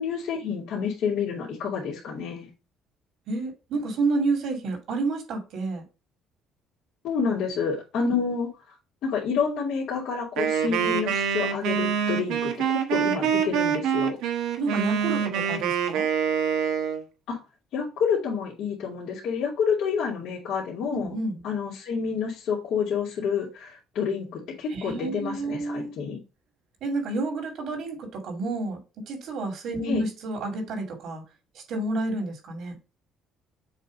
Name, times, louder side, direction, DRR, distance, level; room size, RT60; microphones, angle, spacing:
voice 1, 0.0-2.5 7.0-8.5 9.0-14.2 17.3-17.4 17.7-21.2 21.4-26.2 29.8-30.0, left 6 dB, 65° left, 2.2 m, -28 dB
voice 2, 3.3-5.8 8.0-8.1 14.6-16.1 20.9-21.4 24.7-25.9 26.8-28.8 29.1-31.2 31.5-32.8, right 3 dB, 65° right, 2.4 m, -30 dB
Wind instrument woodwind instrument, 10.4-17.0, right 7 dB, 85° right, 1.1 m, -25 dB
7.3 x 2.7 x 5.1 m
cardioid pair, 125°, 0 cm